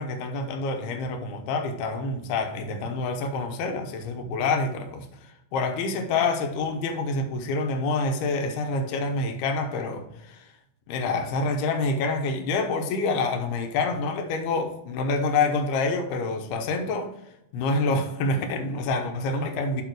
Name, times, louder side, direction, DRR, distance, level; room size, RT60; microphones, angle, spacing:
voice 1, 0.0-5.1 5.5-10.4 10.9-17.1 17.5-19.8, left 3 dB, 85° left, 5 dB, 3.0 m, -27 dB
8.2 x 4.7 x 4.7 m, 0.83 s
omnidirectional pair, 4.4 m